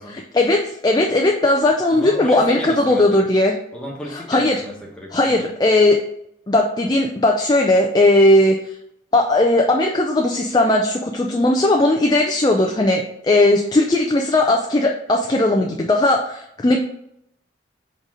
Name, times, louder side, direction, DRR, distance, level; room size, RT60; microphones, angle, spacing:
voice 1, 0.1-3.5 4.1-4.6 5.1-6.0 6.5-8.6 9.1-16.8, left 2 dB, 20° left, 2 dB, 0.4 m, -17 dB
voice 2, 1.9-3.2 3.7-5.5, equal, 5° left, -3 dB, 1.2 m, -34 dB
5.1 x 4.1 x 4.9 m, 0.76 s
head